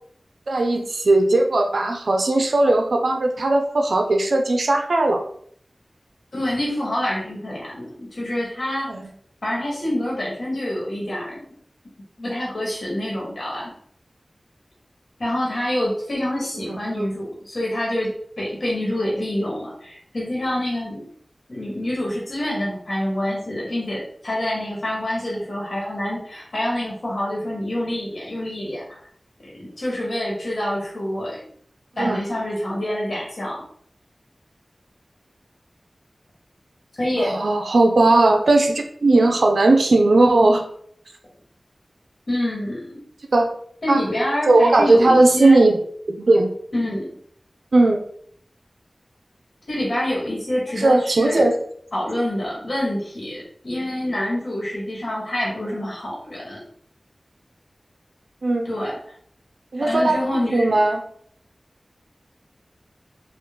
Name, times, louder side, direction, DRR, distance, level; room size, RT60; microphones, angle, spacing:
voice 1, 0.5-5.2 8.9-9.0 16.6-17.1 32.0-32.2 37.2-40.6 43.3-43.5 43.9-44.0 44.5-45.8 46.1-46.5 47.7-48.0 50.8-51.5 58.4-58.7 59.7-60.1 60.5-61.0, right 2 dB, 85° right, 3 dB, 0.5 m, -17 dB
voice 2, 6.3-8.9 9.4-11.4 12.2-13.7 15.2-18.1 18.4-21.0 21.5-29.0 29.6-31.5 32.0-33.6 37.0-37.3 42.3-42.9 43.8-45.7 46.7-47.1 49.7-51.5 51.9-56.6 58.6-58.9 59.8-60.7, left 1 dB, 70° left, -5 dB, 1.6 m, -26 dB
3.8 x 2.4 x 3.7 m, 0.62 s
cardioid pair, 40°, 0 cm